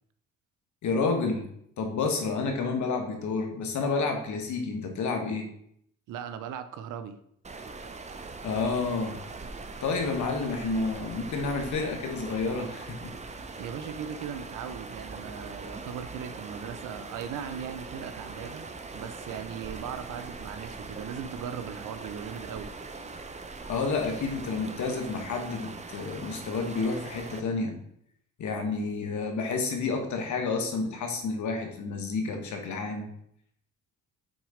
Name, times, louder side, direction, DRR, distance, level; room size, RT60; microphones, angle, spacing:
voice 1, 0.8-1.5 1.8-5.5 8.4-9.2 9.8-13.1 23.7-27.8 28.4-33.1, left 4 dB, 70° left, 1.5 m, -30 dB
voice 2, 6.1-7.2 13.6-22.7, right 8 dB, 85° right, 0.7 m, -38 dB
sound 1, 7.4-27.4, right 3 dB, 25° right, 0.7 m, -41 dB
6.2 x 4.0 x 5.0 m
cardioid pair, 90°, 30 cm